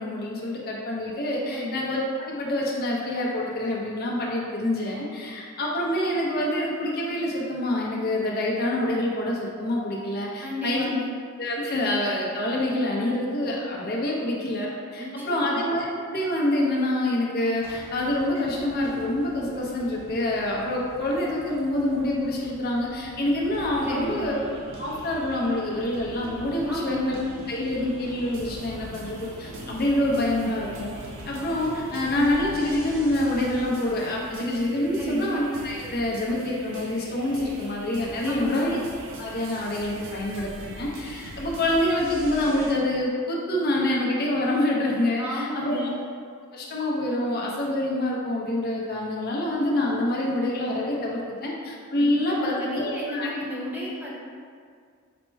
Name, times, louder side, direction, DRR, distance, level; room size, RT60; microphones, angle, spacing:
voice 1, 0.0-10.9 11.4-24.4 24.8-27.2 27.5-30.9 31.3-38.8 39.1-45.9 46.5-53.3, left 1 dB, 45° left, -3 dB, 0.7 m, -26 dB
voice 2, 1.5-1.9 10.4-11.1 15.0-15.6 23.8-24.3 26.7-27.0 35.0-35.4 38.3-38.7 45.2-46.1 52.0-54.2, left 1 dB, 10° right, -4 dB, 0.4 m, -33 dB
sound 1, 17.6-33.6, equal, 25° right, 0.8 m, -45 dB
sound 2, 23.5-42.7, right 1 dB, 60° right, 0.5 m, -42 dB
4.2 x 2.1 x 4.5 m, 2.1 s
head